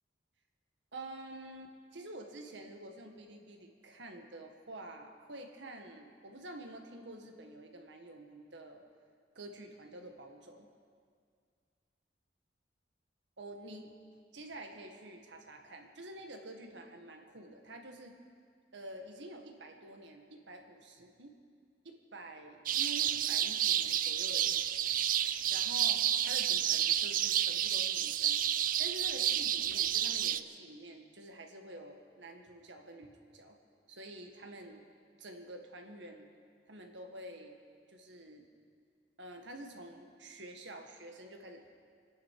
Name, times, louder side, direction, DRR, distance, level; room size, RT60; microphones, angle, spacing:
voice 1, 0.9-8.8 9.4-10.7 13.4-13.9 14.3-18.1 18.7-21.4 21.8-28.4 28.8-33.6 33.9-34.8 35.2-36.3 36.7-37.6 37.9-38.4 39.2-41.7, right 1 dB, 85° right, 3 dB, 1.8 m, -48 dB
sound 1, 22.7-30.4, right 10 dB, 50° right, 0.4 m, -30 dB
27.5 x 10.5 x 4.9 m, 2.1 s
head